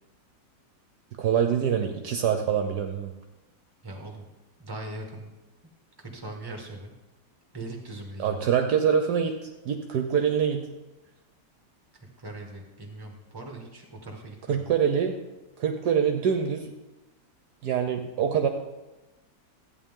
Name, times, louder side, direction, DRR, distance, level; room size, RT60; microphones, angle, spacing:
voice 1, 1.2-3.1 8.2-10.7 14.5-15.1 15.6-16.7 17.6-18.5, right 7 dB, 70° right, 5 dB, 1.3 m, -25 dB
voice 2, 3.8-4.3 4.6-5.3 6.0-6.9 7.5-8.4 11.9-14.7, right 2 dB, 15° right, 0 dB, 1.7 m, -40 dB
14.5 x 9.1 x 3.7 m, 1.1 s
omnidirectional pair, 1.9 m